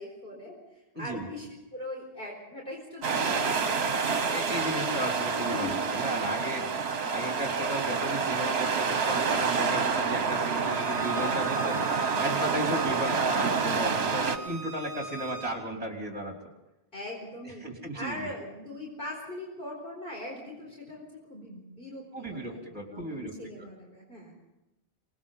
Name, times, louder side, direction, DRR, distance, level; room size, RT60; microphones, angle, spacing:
voice 1, 0.0-4.5 5.4-5.8 12.8-13.1 16.9-17.6 17.9-22.0 22.3-22.6 22.9-24.3, left 1 dB, 50° left, -2 dB, 4.6 m, -41 dB
voice 2, 0.9-1.3 4.3-6.6 7.1-11.8 12.2-16.4 17.4-18.3 22.1-23.3, right 1 dB, 30° right, 1 dB, 3.3 m, -34 dB
sound 1, 3.0-14.4, right 5 dB, 70° right, 1.4 m, -28 dB
Bowed string instrument, 10.6-15.5, right 2 dB, 15° left, 4.9 m, -40 dB
26.5 x 19.0 x 5.6 m, 0.97 s
omnidirectional pair, 1.1 m